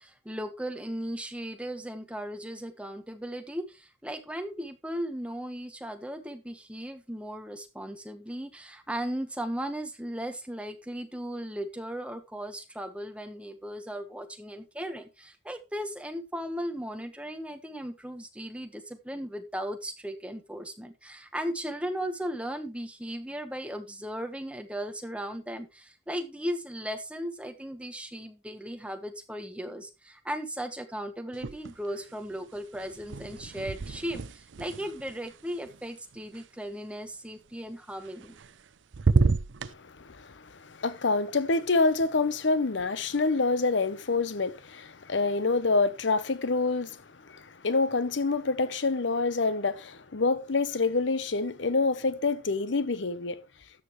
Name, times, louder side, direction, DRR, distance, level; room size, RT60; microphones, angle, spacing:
voice 1, 0.0-38.3, equal, 5° right, 1.3 m, -37 dB
sound 1, 31.3-32.0 32.3-36.4 38.0-38.7 38.9-39.7, right 4 dB, 90° right, 0.6 m, -30 dB
voice 2, 39.7-53.4, left 3 dB, 85° left, 0.9 m, -27 dB
13.0 x 8.4 x 3.2 m
head